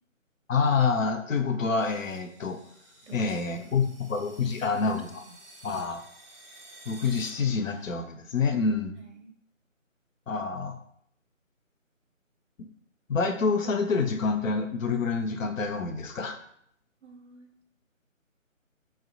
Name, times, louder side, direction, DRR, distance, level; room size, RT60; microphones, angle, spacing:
voice 1, 0.5-2.6 3.1-5.2 5.6-6.0 6.9-8.9 10.3-10.8 12.6-12.7 13.1-16.4, left 4 dB, 75° left, 5 dB, 0.5 m, -27 dB
sound 1, 1.8-7.9, right 2 dB, ahead, 0.4 m, -52 dB
voice 2, 3.0-3.9 4.4-4.6 5.2-5.4 9.0-9.3 17.0-17.5, right 5 dB, 60° right, 3 dB, 0.6 m, -49 dB
2.8 x 2.0 x 2.6 m, 0.70 s
figure-of-eight pair, 160°, 40 cm